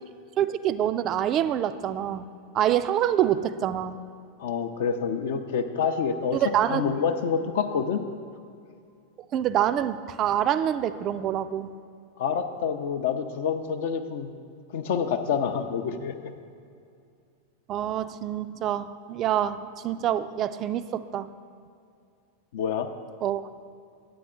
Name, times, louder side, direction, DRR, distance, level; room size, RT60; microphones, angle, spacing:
voice 1, 0.4-2.2 2.5-3.9 6.3-6.8 9.3-11.7 17.7-21.3 23.2-23.4, right 10 dB, 35° right, 13 dB, 0.3 m, -26 dB
voice 2, 4.4-6.4 6.7-8.0 12.2-14.3 14.7-16.3 22.5-22.9, left 6 dB, 55° left, 7 dB, 0.5 m, -27 dB
10.0 x 8.8 x 3.7 m, 2.4 s
figure-of-eight pair, 90°, 0 cm